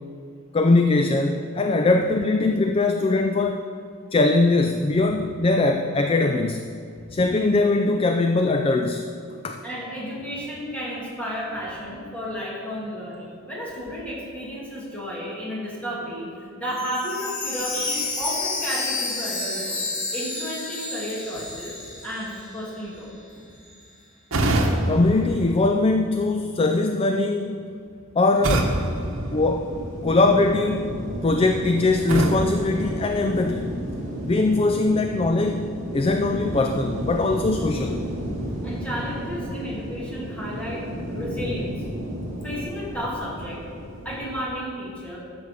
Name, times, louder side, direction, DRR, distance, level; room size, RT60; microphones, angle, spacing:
voice 1, 0.5-3.6 4.1-6.6 7.1-9.1 9.4-9.6 24.9-27.7 28.2-28.8 29.3-29.7 30.0-30.9 31.2-33.8 34.3-35.7 35.9-38.0, left 2 dB, 25° left, 6 dB, 0.3 m, -21 dB
voice 2, 9.6-19.8 20.1-23.1 38.6-41.7 42.4-43.6 44.0-45.2, equal, 5° left, -6 dB, 2.4 m, -32 dB
Chime, 16.7-22.7 23.0-23.1 23.6-23.7, left 3 dB, 60° left, 2.3 m, -30 dB
sound 1, 24.3-26.3 28.4-30.1 32.1-33.7, right 1 dB, 70° right, 1.0 m, -26 dB
sound 2, 28.4-44.4, equal, 35° right, 1.8 m, -33 dB
12.5 x 6.9 x 5.0 m, 2.4 s
head